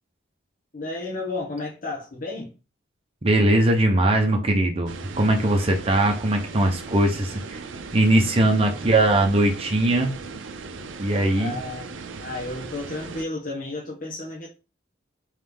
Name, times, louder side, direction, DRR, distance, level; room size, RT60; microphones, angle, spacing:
voice 1, 0.7-2.5 11.3-11.9 12.2-14.5, left 2 dB, 45° left, 1.1 m, -32 dB
voice 2, 3.2-7.6 7.9-10.1 11.0-11.6, right 1 dB, 30° right, 0.7 m, -20 dB
sound 1, 4.9-13.2, right 4 dB, 80° right, 0.5 m, -38 dB
3.7 x 3.2 x 3.5 m
head